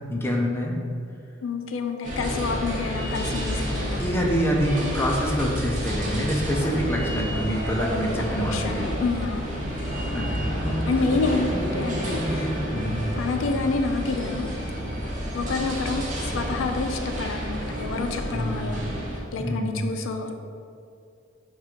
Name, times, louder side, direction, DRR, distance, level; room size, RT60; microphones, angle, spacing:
voice 1, 0.1-0.8 4.0-9.0 10.1-10.3 10.6-10.7 12.7-13.0 18.3-18.7 19.4-19.8, equal, 10° left, -1 dB, 0.5 m, -26 dB
voice 2, 1.4-4.1 8.1-8.2 8.5-9.5 10.8-12.6 13.1-14.5 15.3-18.8 19.3-20.3, left 4 dB, 85° left, 5 dB, 0.4 m, -28 dB
sound 1, 2.0-19.2, equal, 40° right, 0.7 m, -29 dB
3.7 x 2.4 x 4.3 m, 2.4 s
head